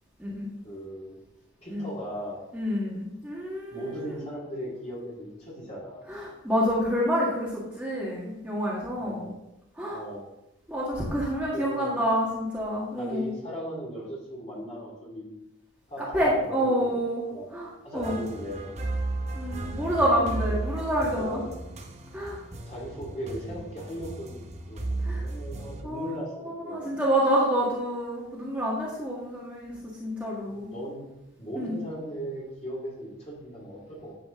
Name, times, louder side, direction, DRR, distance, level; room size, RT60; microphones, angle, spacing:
voice 1, 0.6-1.2 1.6-2.4 3.7-6.0 8.9-9.4 9.9-10.3 11.5-12.0 13.0-15.3 15.9-16.8 17.3-17.5 17.8-18.7 21.1-21.6 22.6-26.8 30.5-31.1 31.4-34.1, equal, 30° left, -6 dB, 2.6 m, -38 dB
voice 2, 2.5-4.3 6.1-9.3 9.7-10.0 10.7-13.3 16.0-17.2 17.5-18.2 19.3-21.4 22.1-22.4 25.0-25.2 25.8-26.2 26.7-30.7 31.6-31.7, equal, 5° right, -7 dB, 1.8 m, -28 dB
sound 1, 18.0-25.8, right 2 dB, 30° right, 0.9 m, -34 dB
10.5 x 7.7 x 3.8 m, 0.90 s
head